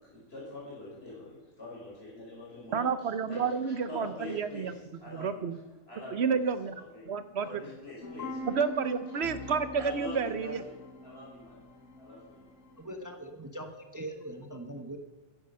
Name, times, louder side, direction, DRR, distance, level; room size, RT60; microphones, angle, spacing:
voice 1, 0.0-2.9 3.3-7.1 7.4-8.9 9.8-11.6 11.9-12.4, left 2 dB, 45° left, -5 dB, 5.4 m, -45 dB
voice 2, 2.7-4.7 5.1-5.6 6.1-6.8 7.1-7.6 8.5-10.6, right 6 dB, 55° right, 12 dB, 1.0 m, -30 dB
sound 1, 8.0-13.0, left 1 dB, 60° left, 1.6 m, -43 dB
voice 3, 12.8-15.0, right 1 dB, 15° right, 5 dB, 1.1 m, -41 dB
14.5 x 10.5 x 5.5 m, 1.2 s
omnidirectional pair, 1.5 m